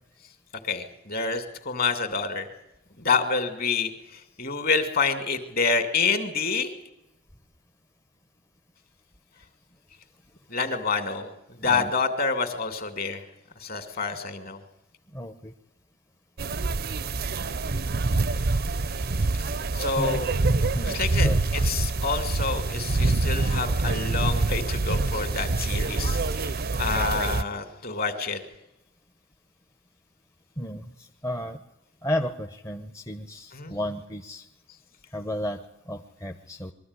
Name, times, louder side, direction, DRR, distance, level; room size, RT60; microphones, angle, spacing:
voice 1, 0.6-2.5 3.0-6.7 10.5-13.2 13.6-14.6 19.7-20.3 20.8-28.4 33.5-33.8, left 4 dB, 45° left, 9 dB, 2.6 m, -28 dB
voice 2, 15.1-15.5 19.8-20.2 20.7-21.4 30.6-31.6 32.0-34.5 35.1-36.7, left 1 dB, 15° left, 5 dB, 0.9 m, -33 dB
sound 1, 16.4-27.4, right 3 dB, 50° right, 0.7 m, -26 dB
22.5 x 14.0 x 9.8 m, 0.90 s
head